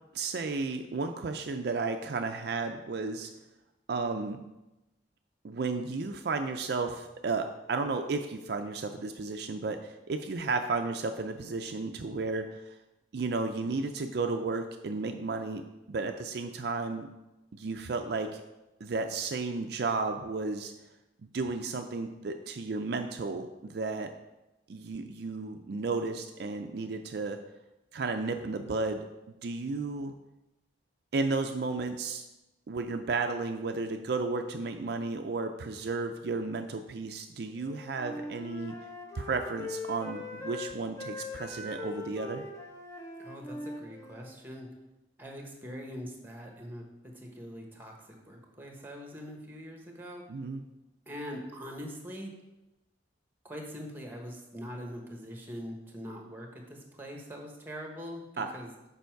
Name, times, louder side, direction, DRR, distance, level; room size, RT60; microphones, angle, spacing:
voice 1, 0.1-3.3 3.9-4.4 5.4-12.7 13.1-15.6 15.9-17.1 17.5-18.4 18.8-20.7 21.3-24.1 24.7-27.4 27.9-29.1 29.4-30.1 31.1-32.2 32.7-38.8 39.1-42.4 50.3-50.6 58.4-58.6, right 3 dB, 60° right, 5 dB, 0.4 m, -33 dB
Wind instrument woodwind instrument, 37.5-44.4, left 2 dB, 15° left, 0.9 m, -41 dB
voice 2, 43.2-44.7 45.2-50.2 51.1-52.3 53.4-58.9, equal, 10° right, 2 dB, 1.1 m, -43 dB
6.9 x 5.5 x 4.6 m, 0.98 s
head